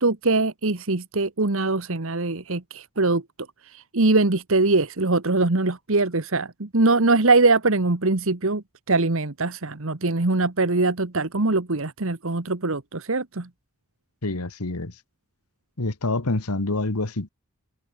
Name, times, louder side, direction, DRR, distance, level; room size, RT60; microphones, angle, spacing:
voice 1, 0.0-3.2 3.6-13.5, right 3 dB, 65° right, 1.4 m, -22 dB
voice 2, 14.2-14.9 15.8-17.3, left 2 dB, 90° left, 1.8 m, -26 dB
head